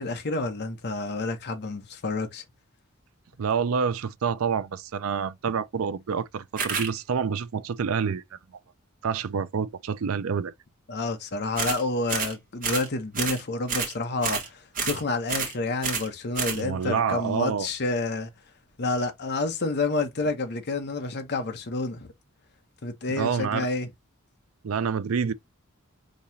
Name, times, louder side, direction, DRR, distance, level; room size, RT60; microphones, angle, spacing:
voice 1, 0.0-2.4 10.9-18.3 18.8-22.1 22.8-23.9, left 3 dB, 50° left, 0.9 m, -29 dB
voice 2, 3.4-8.2 9.0-10.5 16.5-17.7 23.2-23.7 24.6-25.3, right 6 dB, 70° right, 0.4 m, -27 dB
sound 1, 6.6-6.9 11.5-11.8 12.1-12.3 12.6-12.9 13.1-13.4 13.7-13.9 14.2-14.5 14.7-15.0 15.3-15.5 15.8-16.1 16.3-16.6, right 5 dB, 40° right, 1.4 m, -29 dB
5.3 x 2.9 x 2.7 m
head